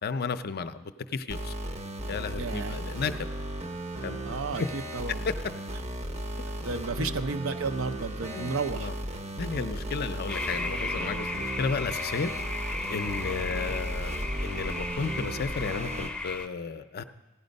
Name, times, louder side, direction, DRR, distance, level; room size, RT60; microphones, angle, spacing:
voice 1, 0.0-1.5 2.1-3.3 4.0-4.2 4.6-4.7 7.0-7.1 8.3-8.9 9.4-12.3 12.9-14.1 14.4-17.0, left 5 dB, 45° left, 11 dB, 0.5 m, -33 dB
sound 1, 1.3-16.1, right 1 dB, 30° right, 0.8 m, -36 dB
voice 2, 2.4-2.8 4.3-5.3 6.6-8.9 13.4-13.8, right 4 dB, 65° right, 10 dB, 0.6 m, -33 dB
sound 2, 10.3-16.5, left 2 dB, 5° left, 0.7 m, -35 dB
15.5 x 10.0 x 5.3 m, 1.1 s
head